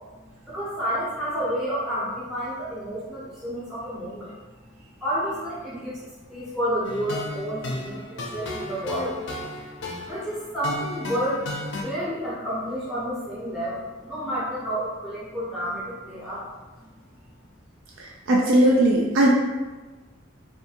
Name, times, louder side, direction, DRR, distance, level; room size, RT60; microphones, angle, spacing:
voice 1, 0.1-4.3 5.0-6.0 6.3-9.2 10.1-11.4 11.7-16.5 16.8-16.9, equal, 5° right, -10 dB, 0.5 m, -30 dB
sound 1, 6.8-11.8, left 2 dB, 60° left, 0.4 m, -34 dB
voice 2, 18.0-19.3, right 1 dB, 90° right, -2 dB, 0.4 m, -19 dB
2.6 x 2.4 x 2.7 m, 1.3 s
head